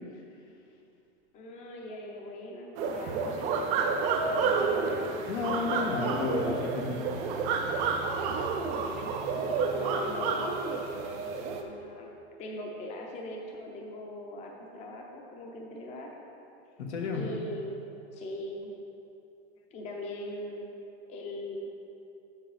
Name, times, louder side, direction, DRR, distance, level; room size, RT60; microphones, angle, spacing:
voice 1, 1.3-5.1 8.7-9.1 9.7-12.1 12.4-16.1 17.1-17.8 18.1-18.7 19.7-20.7 21.1-21.7, left 1 dB, 20° left, 0 dB, 0.7 m, -41 dB
sound 1, 2.8-11.6, right 5 dB, 20° right, 0.3 m, -30 dB
voice 2, 5.3-7.0 16.8-17.2, left 4 dB, 80° left, 0 dB, 1.6 m, -31 dB
7.5 x 6.5 x 4.9 m, 2.7 s
supercardioid pair, 155°, 34 cm